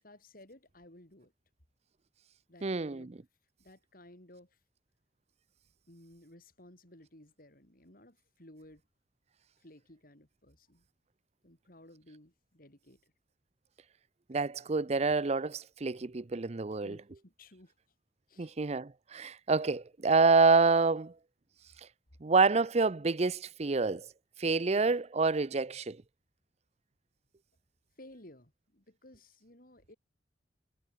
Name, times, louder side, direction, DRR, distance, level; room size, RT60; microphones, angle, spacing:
voice 1, 0.0-1.3 2.5-3.1 3.6-4.6 5.9-8.8 9.6-10.9 11.4-13.1 16.7-17.7 18.3-18.6 28.0-30.0, left 1 dB, 55° left, 5.8 m, -56 dB
voice 2, 2.6-3.1 14.3-17.0 18.4-21.1 22.2-24.1 24.4-26.0, right 4 dB, 40° right, 0.6 m, -27 dB
head